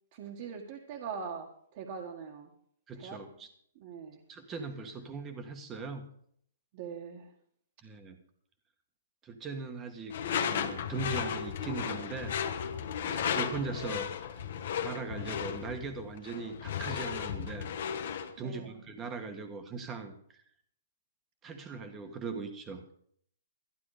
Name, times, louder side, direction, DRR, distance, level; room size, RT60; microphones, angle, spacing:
voice 1, 0.1-2.5 2.9-3.2 3.7-4.2 6.7-7.3 13.0-13.4 18.4-18.8, right 6 dB, 40° right, -1 dB, 1.6 m, -42 dB
voice 2, 2.9-3.5 4.3-6.1 7.8-8.2 9.2-10.1 10.4-12.4 13.0-14.1 14.8-20.4 21.4-22.8, right 4 dB, 15° right, 6 dB, 1.5 m, -40 dB
Door / Screech, 10.1-18.3, left 8 dB, 55° left, 1.2 m, -35 dB
13.0 x 11.0 x 5.0 m, 0.65 s
hypercardioid pair, 155°, 0 cm